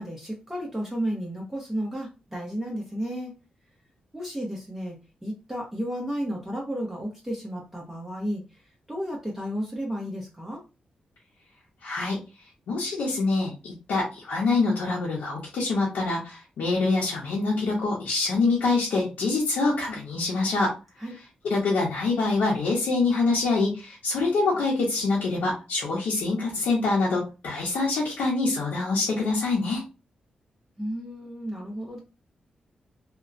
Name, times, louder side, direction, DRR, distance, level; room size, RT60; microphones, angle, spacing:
voice 1, 0.0-3.3 4.1-5.0 5.2-8.6 8.9-10.6 21.0-21.1 30.8-32.0, equal, 10° right, -2 dB, 0.9 m, -32 dB
voice 2, 11.8-12.2 12.7-20.7 21.4-29.8, left 3 dB, 90° left, -5 dB, 0.8 m, -25 dB
2.9 x 2.1 x 2.5 m, 0.29 s
cardioid pair, 65°, 3 cm